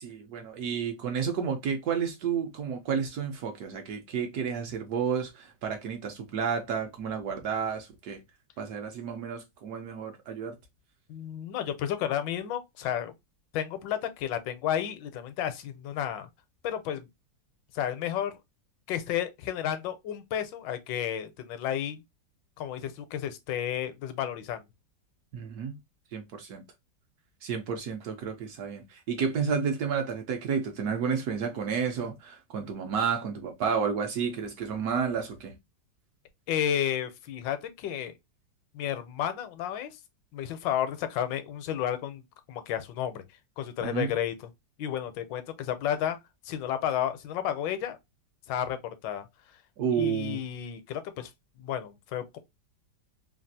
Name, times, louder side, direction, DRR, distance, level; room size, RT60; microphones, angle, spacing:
voice 1, 0.0-8.2 8.6-10.5 25.3-25.8 26.1-26.6 27.4-35.5 43.8-44.1 49.8-50.4, right 6 dB, 70° right, 1.0 m, -31 dB
voice 2, 11.1-13.1 13.5-16.3 16.6-17.1 17.7-18.4 18.9-22.0 22.6-24.6 36.5-38.1 38.7-40.0 40.3-42.2 42.5-43.2 43.6-44.5 44.8-46.2 46.4-48.0 48.5-49.2 50.0-51.3 51.6-52.4, left 10 dB, 80° left, 1.2 m, -32 dB
3.3 x 2.3 x 2.6 m
omnidirectional pair, 2.0 m